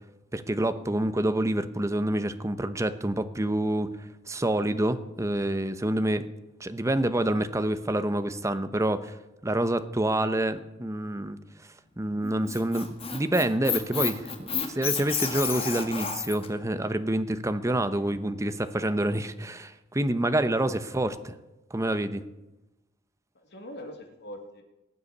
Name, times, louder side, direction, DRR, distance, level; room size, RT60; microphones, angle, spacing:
voice 1, 0.3-3.9 4.3-6.3 6.6-9.2 9.4-11.4 12.0-21.3 21.7-22.2, right 1 dB, 15° right, 11 dB, 0.8 m, -27 dB
Squeak, 12.2-16.5, left 6 dB, 30° left, 1.8 m, -30 dB
voice 2, 17.6-18.1 23.3-24.6, left 1 dB, 60° left, 4 dB, 2.2 m, -44 dB
18.5 x 7.0 x 9.7 m, 1.0 s
head